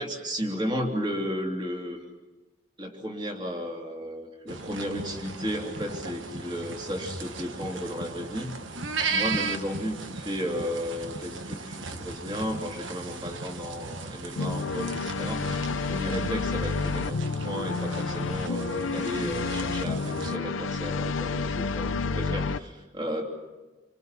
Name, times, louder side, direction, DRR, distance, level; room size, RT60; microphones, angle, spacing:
voice 1, 0.0-2.0 2.8-8.6 9.1-23.2, equal, 25° right, 1 dB, 3.0 m, -34 dB
sound 1, 4.5-20.4, right 4 dB, 75° right, 1.4 m, -36 dB
sound 2, 14.4-22.6, left 4 dB, 85° left, 0.7 m, -30 dB
28.0 x 26.0 x 5.8 m, 1.2 s
head